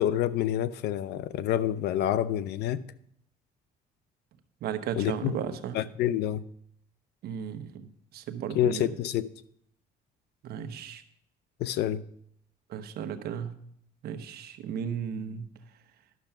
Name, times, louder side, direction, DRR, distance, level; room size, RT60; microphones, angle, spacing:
voice 1, 0.0-2.8 5.0-5.4 5.7-6.4 8.5-9.3 11.6-12.0, left 11 dB, 75° left, 17 dB, 0.6 m, -27 dB
voice 2, 4.6-5.8 7.2-8.9 10.4-11.0 12.7-13.6 14.0-15.5, right 8 dB, 65° right, 8 dB, 1.1 m, -35 dB
11.0 x 6.7 x 5.9 m, 0.70 s
cardioid pair, 110°, 17 cm